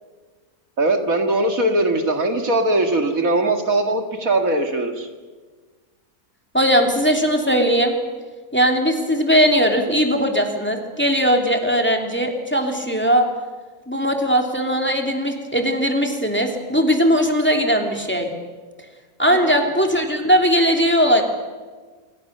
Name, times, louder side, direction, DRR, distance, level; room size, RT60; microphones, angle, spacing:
voice 1, 0.8-5.1 19.3-19.7, right 2 dB, 60° right, 5 dB, 2.5 m, -20 dB
voice 2, 6.5-8.0 8.5-13.3 13.9-18.3 19.2-21.2, equal, 5° left, 3 dB, 2.9 m, -19 dB
27.0 x 24.0 x 6.8 m, 1.4 s
omnidirectional pair, 1.7 m